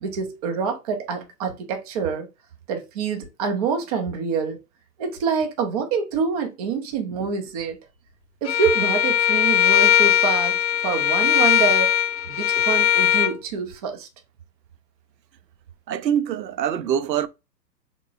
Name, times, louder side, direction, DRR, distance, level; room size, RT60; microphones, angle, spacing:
voice 1, 0.0-2.3 2.7-4.6 5.0-7.8 8.4-12.0 12.3-14.1, right 5 dB, 25° right, 0.5 m, -26 dB
Bowed string instrument, 8.5-13.3, left 11 dB, 85° left, 0.7 m, -19 dB
voice 2, 15.9-17.3, right 9 dB, 80° right, 0.6 m, -24 dB
3.6 x 3.0 x 2.5 m
hypercardioid pair, 125°, 50 cm